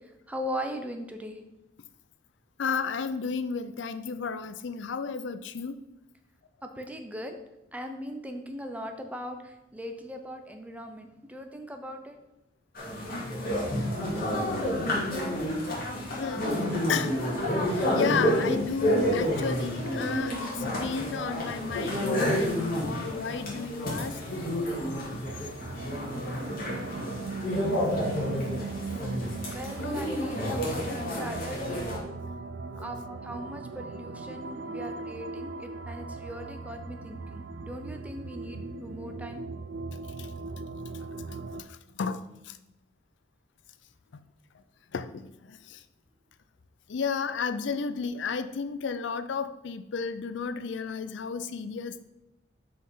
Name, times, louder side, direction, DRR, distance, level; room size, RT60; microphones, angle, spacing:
voice 1, 0.3-1.4 6.6-7.4 7.7-12.2 29.5-31.9 32.8-39.4, equal, 10° right, 5 dB, 0.7 m, -39 dB
voice 2, 2.6-5.8 14.3-14.9 16.1-16.5 16.9-17.1 17.7-24.2 29.8-29.9 32.7-32.9 40.2-40.3 41.3-42.6 44.9-45.8 46.9-52.1, left 5 dB, 70° left, 11 dB, 0.4 m, -33 dB
sound 1, 12.7-32.0, equal, 50° left, 2.4 m, -30 dB
sound 2, 25.2-41.6, right 3 dB, 70° right, 0.5 m, -39 dB
5.7 x 5.2 x 5.5 m, 0.91 s
head